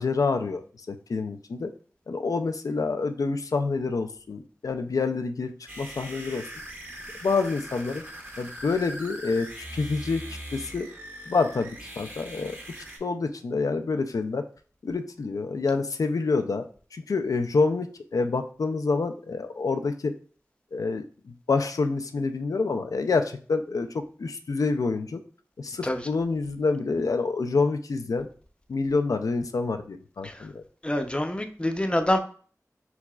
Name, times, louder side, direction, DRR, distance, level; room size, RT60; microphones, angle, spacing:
voice 1, 0.0-1.7 2.1-6.5 7.2-8.0 8.4-10.2 10.5-10.9 11.3-12.6 13.0-14.5 14.8-20.1 20.7-23.9 24.2-25.2 25.6-28.3 28.7-30.6, left 4 dB, 85° left, 7 dB, 0.4 m, -27 dB
sound 1, 5.7-13.0, right 1 dB, 35° right, 1.4 m, -41 dB
voice 2, 30.8-32.2, left 1 dB, 20° left, 6 dB, 0.6 m, -26 dB
4.7 x 4.0 x 2.3 m, 0.43 s
wide cardioid pair, 50°, 6 cm